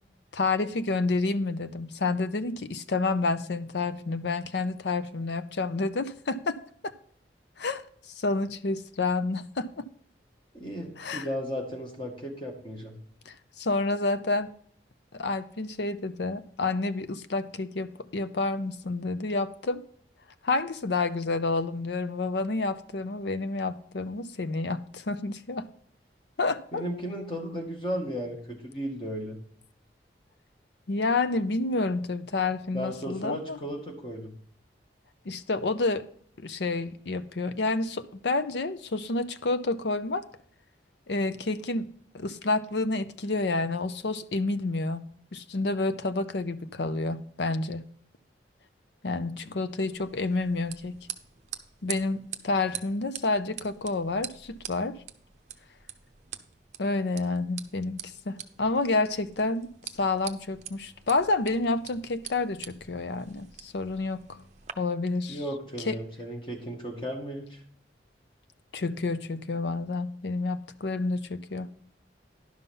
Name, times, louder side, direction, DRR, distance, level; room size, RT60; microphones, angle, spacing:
voice 1, 0.3-6.6 7.6-7.8 8.2-9.8 11.0-11.3 13.3-14.5 15.1-19.8 20.4-25.7 26.4-26.8 30.9-33.6 35.3-36.0 36.4-40.2 41.1-41.9 42.1-45.0 45.3-47.8 49.0-51.0 51.8-55.0 56.8-58.0 58.3-59.7 60.0-64.4 64.8-65.4 65.9-66.0 68.7-71.7, left 3 dB, 70° left, 12 dB, 0.6 m, -29 dB
voice 2, 10.5-12.9 26.7-29.4 32.7-34.3 65.3-67.6, equal, 25° left, 0 dB, 2.0 m, -35 dB
sound 1, 49.9-64.7, right 10 dB, 40° right, 0.6 m, -44 dB
11.0 x 5.6 x 5.4 m, 0.62 s
head